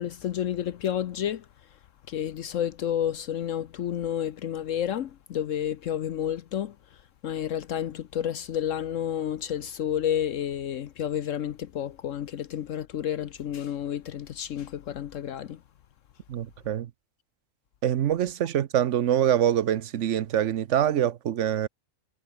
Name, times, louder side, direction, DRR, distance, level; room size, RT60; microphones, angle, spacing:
voice 1, 0.0-1.5 2.1-7.0 7.2-15.6, left 10 dB, 70° left, 1.1 m, -30 dB
voice 2, 16.3-16.9 17.8-21.7, right 10 dB, 65° right, 1.0 m, -25 dB
omnidirectional pair, 1.4 m